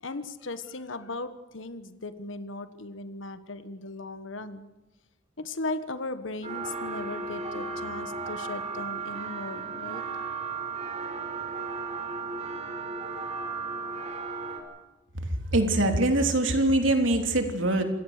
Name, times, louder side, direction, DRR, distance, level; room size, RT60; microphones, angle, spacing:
voice 1, 0.0-4.7 5.4-10.0, left 2 dB, 85° left, 11 dB, 1.4 m, -37 dB
sound 1, 6.4-14.6, right 4 dB, 35° right, 4.8 m, -35 dB
voice 2, 15.5-17.8, right 2 dB, 85° right, 5 dB, 3.4 m, -23 dB
27.5 x 17.5 x 6.7 m, 1.1 s
head